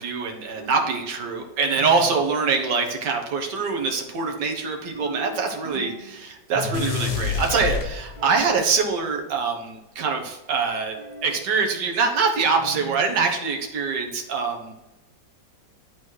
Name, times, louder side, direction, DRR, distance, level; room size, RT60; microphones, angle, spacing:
voice 1, 0.0-14.8, right 4 dB, 70° right, 3 dB, 1.8 m, -24 dB
sound 1, 0.6-1.1 1.8-2.3 5.0-6.1 6.5-7.2 8.2-8.7 11.0-11.5 12.6-13.1, right 2 dB, 30° right, 0.6 m, -36 dB
sound 2, 6.7-8.5, left 6 dB, 60° left, 1.5 m, -28 dB
11.0 x 4.1 x 4.7 m, 1.0 s
omnidirectional pair, 2.0 m